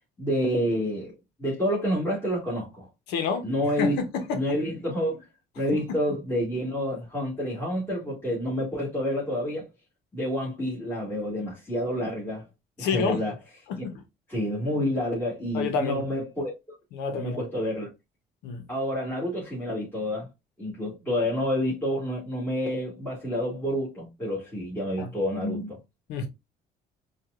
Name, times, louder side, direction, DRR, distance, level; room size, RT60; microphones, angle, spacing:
voice 1, 0.2-2.9 3.4-4.0 4.3-5.2 5.6-9.7 10.1-12.5 12.8-13.3 13.8-13.9 14.3-16.8 17.2-17.9 18.7-20.3 20.6-25.8, equal, 10° left, 1.8 m, -28 dB
voice 2, 3.1-3.5 3.8-4.5 5.7-6.0 12.8-13.2 13.7-14.0 15.5-16.0 16.9-17.4 18.4-18.7 25.0-25.1 26.1-26.3, left 5 dB, 90° left, 0.8 m, -29 dB
4.5 x 2.4 x 2.4 m
cardioid pair, 110°, 17 cm